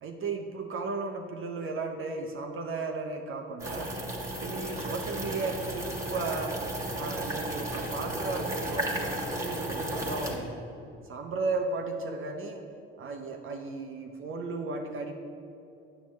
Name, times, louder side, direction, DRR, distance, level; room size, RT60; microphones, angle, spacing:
voice 1, 0.0-3.9 4.4-6.6 6.9-10.7 11.0-12.6 13.0-15.2, right 3 dB, 45° right, 3 dB, 0.7 m, -35 dB
sound 1, 3.6-10.4, right 1 dB, 10° right, 1.5 m, -34 dB
8.5 x 6.0 x 3.1 m, 2.8 s
hypercardioid pair, 60°, 30 cm